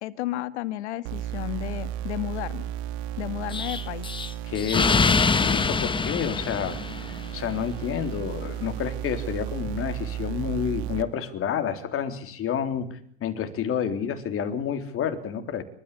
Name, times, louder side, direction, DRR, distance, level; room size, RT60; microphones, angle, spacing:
voice 1, 0.0-2.7 3.2-4.1, left 15 dB, 80° left, 13 dB, 1.8 m, -32 dB
sound 1, 1.0-11.0, right 11 dB, 70° right, 2.0 m, -34 dB
Explosion, 3.5-7.4, left 4 dB, 15° left, 1.1 m, -24 dB
voice 2, 4.4-4.9 5.4-6.8 7.1-15.6, left 8 dB, 40° left, 7 dB, 3.6 m, -29 dB
29.0 x 13.5 x 8.4 m, 0.65 s
supercardioid pair, 110°, 34 cm